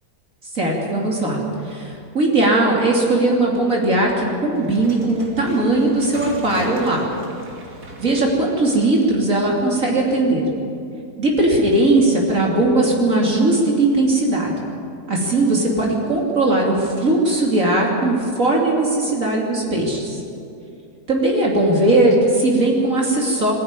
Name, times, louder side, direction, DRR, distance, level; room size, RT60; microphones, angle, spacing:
voice 1, 0.5-1.4 1.6-7.1 8.0-10.5 11.2-14.5 15.1-20.2 21.1-23.5, right 2 dB, 55° right, -2 dB, 3.2 m, -18 dB
sound 1, 4.6-9.7, right 1 dB, 70° right, 3.2 m, -39 dB
21.0 x 14.0 x 9.8 m, 2.6 s
omnidirectional pair, 1.7 m